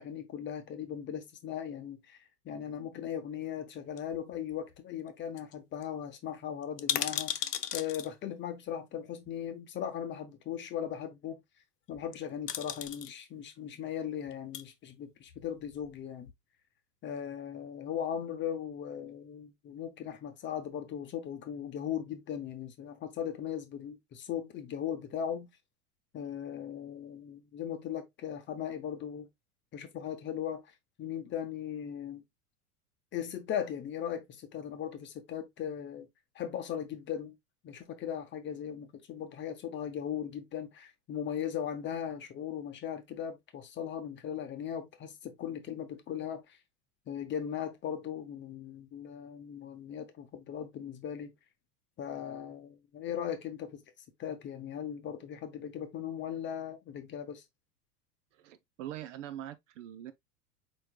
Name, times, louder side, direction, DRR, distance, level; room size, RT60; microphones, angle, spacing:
voice 1, 0.0-2.2 2.4-11.4 11.9-16.3 17.0-25.5 26.1-29.3 29.7-30.6 31.0-32.2 33.1-36.1 36.3-37.3 37.6-46.6 47.1-51.3 52.0-53.8 54.2-57.4, left 9 dB, 25° left, 0.8 m, -38 dB
sound 1, 4.0-4.8 5.1-5.2 5.4-5.5 5.8-5.9 6.6-8.1 9.3-9.4 11.9-12.1 12.5-13.1 14.3-14.6 15.3-16.0 16.3-16.4, left 9 dB, 85° left, 0.6 m, -36 dB
voice 2, 58.3-60.1, right 11 dB, 50° right, 0.6 m, -43 dB
4.6 x 4.5 x 2.2 m
figure-of-eight pair, 85°, 47 cm